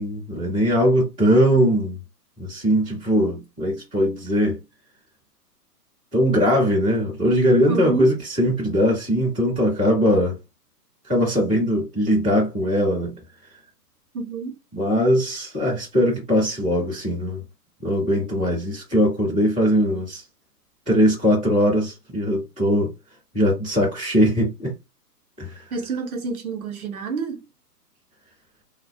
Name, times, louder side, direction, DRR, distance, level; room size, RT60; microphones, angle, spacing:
voice 1, 0.0-2.0 2.4-4.6 6.1-10.4 11.1-13.2 14.7-17.4 17.8-20.2 20.9-22.9 23.3-24.7 25.4-25.6, equal, 5° right, 0.5 m, -20 dB
voice 2, 7.7-8.2 14.1-14.5 25.7-27.5, right 4 dB, 60° right, 0.9 m, -28 dB
2.3 x 2.1 x 2.5 m
hypercardioid pair, 145°, 49 cm